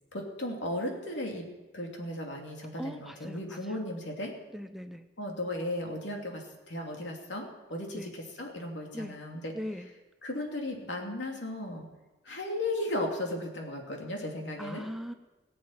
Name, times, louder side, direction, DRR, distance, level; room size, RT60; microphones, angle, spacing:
voice 1, 0.1-1.5 1.7-4.3 5.2-7.4 7.7-9.5 10.2-11.9 12.2-14.8, left 1 dB, 80° left, 1 dB, 2.7 m, -35 dB
voice 2, 2.8-3.8 4.5-5.0 7.9-8.1 8.9-9.2 9.5-9.9 14.6-15.1, equal, ahead, 7 dB, 0.5 m, -39 dB
19.0 x 7.8 x 7.2 m, 1.1 s
head